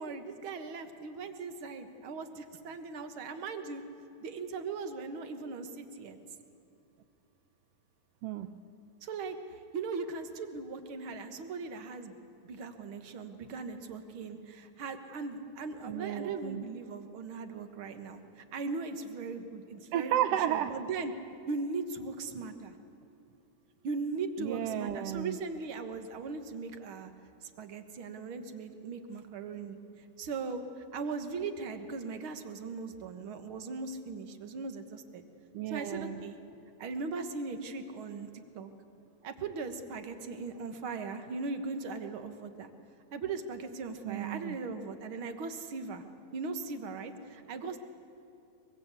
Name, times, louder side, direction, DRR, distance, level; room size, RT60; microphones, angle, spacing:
voice 1, 0.0-3.8 4.2-6.2 9.0-9.4 9.7-12.1 12.5-18.2 18.5-20.1 20.5-21.1 21.5-22.7 23.8-27.1 27.6-29.8 30.2-30.6 30.9-35.2 35.7-36.4 36.8-38.3 38.6-38.7 39.2-42.7 43.1-46.0 46.3-47.8, right 4 dB, 50° right, 8 dB, 1.8 m, -39 dB
voice 2, 8.2-8.5 15.8-16.7 19.9-20.8 24.4-25.4 35.5-36.2 44.0-44.6, right 11 dB, 85° right, 10 dB, 1.4 m, -33 dB
23.5 x 23.0 x 8.2 m, 2.6 s
omnidirectional pair, 3.6 m